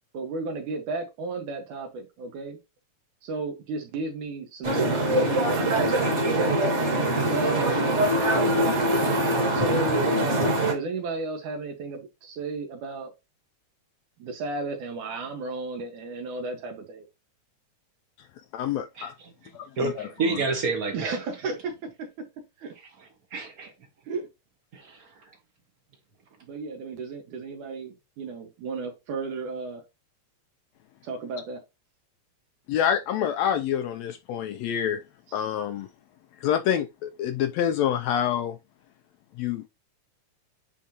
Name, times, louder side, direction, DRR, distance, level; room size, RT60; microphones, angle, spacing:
voice 1, 0.1-2.6 3.2-6.2 7.3-8.0 8.3-8.8 9.5-13.1 14.2-17.1 20.9-22.3 22.6-22.7 24.1-24.3 26.4-29.8 31.0-31.6 35.3-35.5, right 3 dB, 80° right, 3.1 m, -34 dB
sound 1, 4.6-10.7, right 1 dB, 30° right, 1.6 m, -23 dB
voice 2, 18.5-19.1 19.5-20.4 32.7-35.0 35.3-35.9 36.4-38.6 39.4-39.7, left 9 dB, 80° left, 1.6 m, -27 dB
voice 3, 19.8-21.2 23.3-23.7 24.7-25.0, right 3 dB, 55° right, 1.0 m, -28 dB
9.5 x 3.9 x 2.9 m
omnidirectional pair, 3.5 m